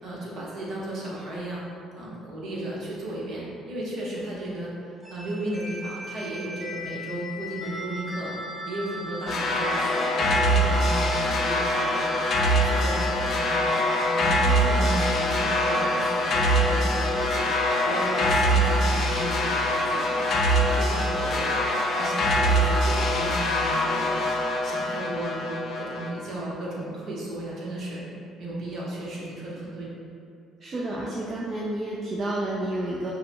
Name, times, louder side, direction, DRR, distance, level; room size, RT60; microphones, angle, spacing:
voice 1, 0.0-1.6 2.0-4.7 5.1-8.3 8.7-12.1 12.5-13.7 14.0-17.5 17.8-20.2 20.6-24.1 24.6-28.0 28.4-29.9, right 1 dB, 60° right, -5 dB, 0.9 m, -35 dB
sound 1, 5.0-18.8, left 1 dB, 15° right, 1.1 m, -36 dB
sound 2, 9.3-26.1, equal, 55° left, 0.4 m, -24 dB
voice 2, 30.6-33.1, right 1 dB, 40° right, -5 dB, 0.4 m, -30 dB
5.5 x 2.1 x 2.2 m, 2.5 s
hypercardioid pair, 65°, 0 cm